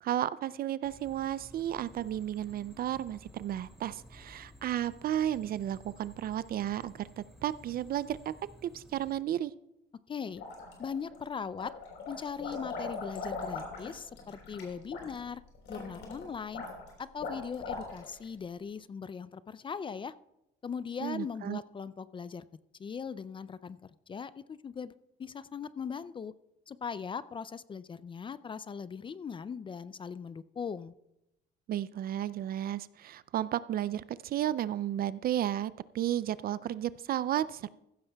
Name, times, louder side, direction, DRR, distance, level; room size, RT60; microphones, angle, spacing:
voice 1, 0.0-8.3 8.6-9.5 21.0-21.6 31.7-37.7, right 11 dB, 50° right, 17 dB, 0.4 m, -33 dB
sound 1, 0.8-9.1, equal, ahead, 2.6 m, -55 dB
voice 2, 10.1-10.4 10.8-11.7 12.1-15.4 15.7-16.6 17.0-20.1 20.6-22.4 22.8-24.9 25.2-26.3 26.7-30.9, left 6 dB, 25° left, 16 dB, 0.3 m, -39 dB
sound 2, 10.3-11.2 11.5-18.2, left 4 dB, 75° left, 3.8 m, -40 dB
15.5 x 13.0 x 2.3 m, 0.89 s
cardioid pair, 105°, 19 cm